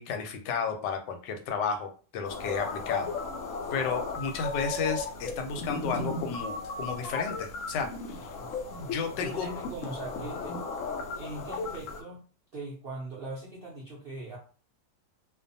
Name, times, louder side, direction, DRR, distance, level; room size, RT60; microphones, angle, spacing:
voice 1, 0.0-3.1 3.7-8.3 8.8-9.5, left 5 dB, 85° left, 5 dB, 1.2 m, -32 dB
sound 1, 2.2-12.0, left 4 dB, 70° left, 0.7 m, -36 dB
voice 2, 9.1-10.6 11.1-12.2 12.5-14.4, right 2 dB, 65° right, -5 dB, 0.5 m, -40 dB
2.5 x 2.4 x 2.6 m, 0.39 s
omnidirectional pair, 1.8 m